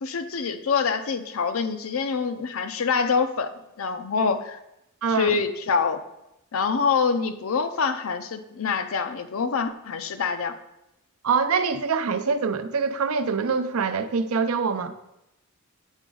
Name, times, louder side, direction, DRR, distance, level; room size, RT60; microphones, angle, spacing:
voice 1, 0.0-3.5 3.8-4.6 5.1-6.0 6.5-10.5, left 5 dB, 70° left, 10 dB, 0.6 m, -25 dB
voice 2, 5.0-5.4 11.2-14.9, right 5 dB, 75° right, 10 dB, 0.5 m, -24 dB
8.1 x 4.9 x 3.8 m, 0.87 s
head